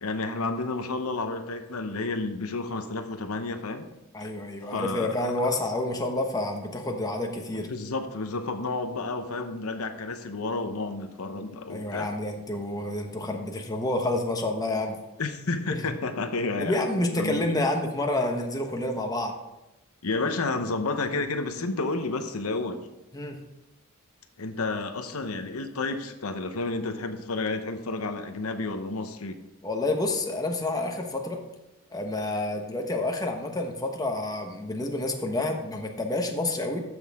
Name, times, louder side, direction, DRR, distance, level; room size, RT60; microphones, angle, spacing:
voice 1, 0.0-3.9 4.7-5.2 7.5-12.1 15.2-16.9 17.2-17.5 20.0-22.9 24.4-29.4, left 3 dB, 90° left, 7 dB, 0.9 m, -31 dB
voice 2, 4.1-7.7 11.7-15.0 16.6-19.3 23.1-23.4 29.6-31.4 31.9-36.8, left 2 dB, 15° left, 2 dB, 1.1 m, -29 dB
14.0 x 6.4 x 3.6 m, 0.98 s
head